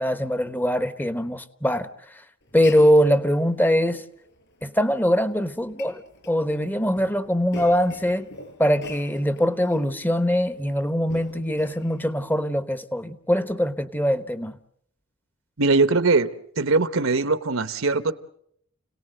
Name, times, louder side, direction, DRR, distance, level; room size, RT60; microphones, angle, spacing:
voice 1, 0.0-2.2 2.5-4.0 4.6-8.3 8.6-14.6, equal, 10° left, 1.1 m, -22 dB
Glass, 2.4-12.3, left 2 dB, 55° left, 6.7 m, -46 dB
voice 2, 15.6-16.3 16.6-18.1, right 3 dB, 65° right, 1.1 m, -21 dB
30.0 x 18.5 x 7.9 m
head